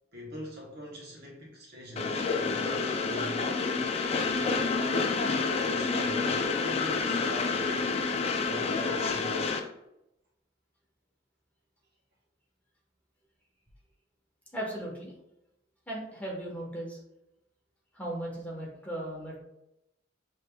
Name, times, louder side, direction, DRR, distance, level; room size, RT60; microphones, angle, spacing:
voice 1, 0.1-3.4 4.3-5.1 5.6-8.2 8.5-9.6, left 1 dB, 60° right, -2 dB, 1.3 m, -43 dB
Train, 2.0-9.6, left 4 dB, 35° left, 0.4 m, -29 dB
voice 2, 14.5-15.1 15.9-17.0 17.9-19.4, right 1 dB, 10° left, -4 dB, 1.2 m, -37 dB
6.5 x 3.3 x 2.3 m, 0.86 s
head